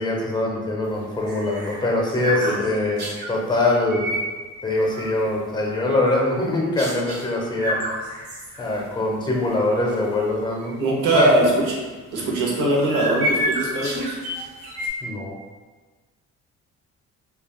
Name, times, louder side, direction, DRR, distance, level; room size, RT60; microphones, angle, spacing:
voice 1, 0.0-4.1 4.6-7.8 8.6-10.8 11.1-11.3 15.0-15.3, left 2 dB, 15° left, -1 dB, 0.6 m, -23 dB
sound 1, 0.9-3.3 3.8-4.3 4.7-5.3 5.7-6.4 6.8-7.2 7.6-9.0 9.4-9.5 9.9-10.1 10.6-10.7 12.2-14.9, equal, 65° right, 1.1 m, -29 dB
voice 2, 10.8-11.7 12.1-14.2, right 2 dB, 90° right, -2 dB, 0.8 m, -21 dB
3.3 x 2.3 x 2.3 m, 1.3 s
cardioid pair, 90°, 30 cm